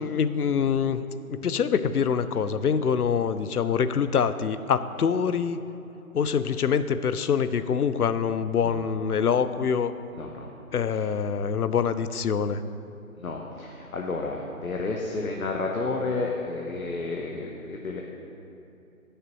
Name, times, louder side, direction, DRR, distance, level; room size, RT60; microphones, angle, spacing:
voice 1, 0.0-5.6 6.1-9.9 10.7-12.6, left 7 dB, 90° left, 13 dB, 0.6 m, -25 dB
voice 2, 13.2-18.0, left 3 dB, 70° left, 0 dB, 1.0 m, -31 dB
17.0 x 6.6 x 3.0 m, 2.7 s
figure-of-eight pair, 170°, 44 cm